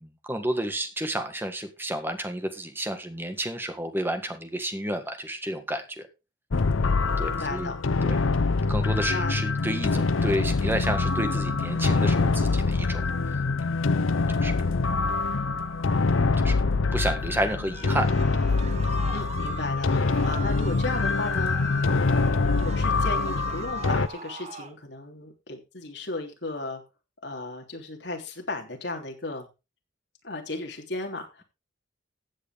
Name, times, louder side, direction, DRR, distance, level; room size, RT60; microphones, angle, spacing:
voice 1, 0.0-6.1 7.2-7.7 8.0-8.2 8.7-13.0 13.3-13.8 14.4-14.5 16.4-16.6 16.9-18.4, right 1 dB, 10° right, 7 dB, 1.6 m, -31 dB
sound 1, 6.5-24.1, left 3 dB, 85° left, 0.7 m, -25 dB
voice 2, 7.2-7.8 9.1-9.3 19.1-21.6 21.9-26.8 27.2-29.5 30.2-31.4, left 2 dB, 60° left, 1 dB, 3.3 m, -35 dB
sound 2, 17.3-24.7, right 5 dB, 35° right, 1.1 m, -40 dB
15.0 x 8.3 x 3.6 m, 0.28 s
head